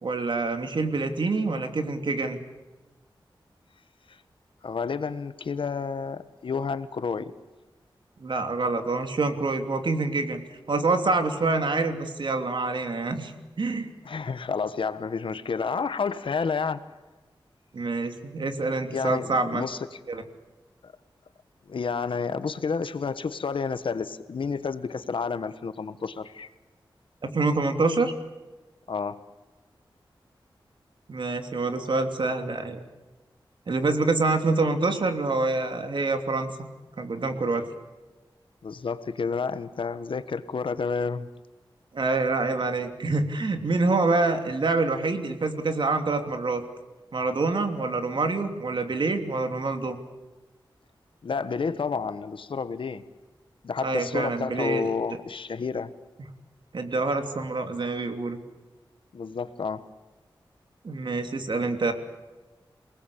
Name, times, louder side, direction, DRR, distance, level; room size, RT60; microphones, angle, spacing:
voice 1, 0.0-2.4 8.2-10.4 10.7-13.3 13.6-13.9 17.7-19.6 20.1-20.2 27.2-28.1 31.1-32.8 33.7-36.7 37.0-37.7 41.9-46.6 47.1-50.0 53.8-54.9 56.7-58.4 60.8-61.9, right 3 dB, 65° right, 6 dB, 3.0 m, -26 dB
voice 2, 4.6-7.3 14.0-16.8 18.9-20.0 20.8-20.9 21.7-26.5 28.9-29.2 38.6-41.3 51.2-53.0 53.6-55.9 59.1-59.9, left 5 dB, 75° left, 12 dB, 1.4 m, -30 dB
28.5 x 19.5 x 8.6 m, 1.2 s
wide cardioid pair, 95°, 9 cm